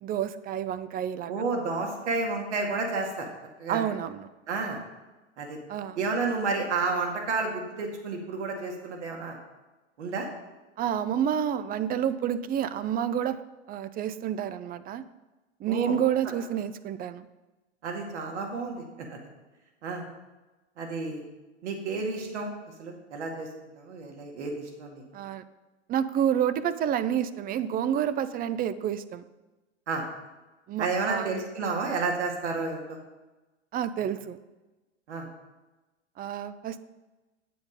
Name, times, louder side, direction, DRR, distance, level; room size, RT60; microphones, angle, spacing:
voice 1, 0.0-1.4 3.7-4.3 5.7-6.0 10.8-13.4 13.7-15.0 15.6-17.3 25.1-25.4 25.9-29.2 30.7-31.3 33.7-34.4 36.2-36.8, right 9 dB, 25° right, 14 dB, 0.5 m, -29 dB
voice 2, 1.3-3.3 3.6-3.9 4.5-4.8 5.4-5.6 6.0-9.4 10.0-10.3 15.7-15.9 17.8-19.2 19.8-20.1 20.8-21.2 21.6-22.5 22.8-23.5 23.8-25.0 29.9-30.0 30.8-33.0 35.1-35.3, right 3 dB, 75° right, 1 dB, 2.2 m, -31 dB
9.3 x 8.0 x 5.2 m, 1.1 s
hypercardioid pair, 100°, 35 cm